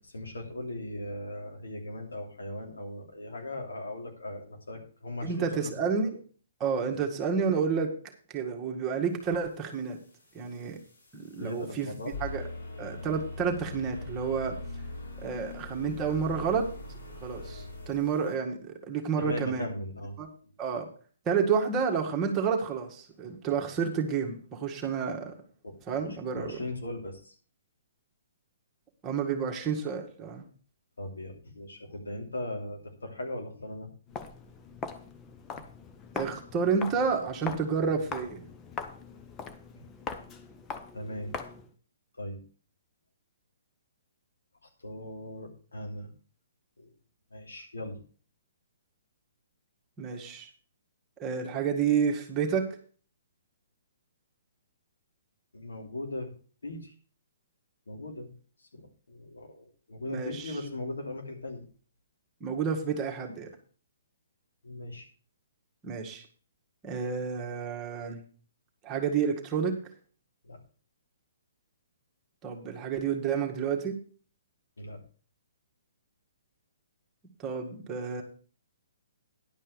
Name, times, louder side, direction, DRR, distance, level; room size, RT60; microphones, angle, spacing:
voice 1, 0.1-6.0 6.9-7.0 11.4-12.1 17.5-17.7 19.2-20.5 25.6-27.3 31.0-33.9 40.9-41.3 42.2-42.4 44.8-46.1 46.8-46.9 47.3-48.0 55.5-56.3 56.6-56.9 57.9-58.3 58.7-61.6 64.6-65.1 70.4-70.6 74.8-75.0, left 1 dB, 90° left, 2 dB, 2.9 m, -39 dB
voice 2, 5.2-6.2 6.6-7.9 8.3-10.0 10.3-10.8 11.1-11.9 12.2-12.4 12.8-14.6 15.2-16.7 17.1-19.7 20.2-20.3 20.6-20.9 21.3-25.3 25.9-26.6 29.0-30.4 36.1-38.5 50.0-50.5 51.2-52.7 60.0-60.6 62.4-63.5 65.8-66.3 66.8-68.2 68.8-69.8 72.4-74.0 77.4-78.2, right 6 dB, 20° right, 1 dB, 1.9 m, -30 dB
sound 1, 9.7-18.3, left 2 dB, 60° left, 5.8 m, -42 dB
Walk footsteps, 34.1-41.7, left 5 dB, 20° left, 0.9 m, -41 dB
11.0 x 5.5 x 6.8 m, 0.41 s
hypercardioid pair, 140°, 0 cm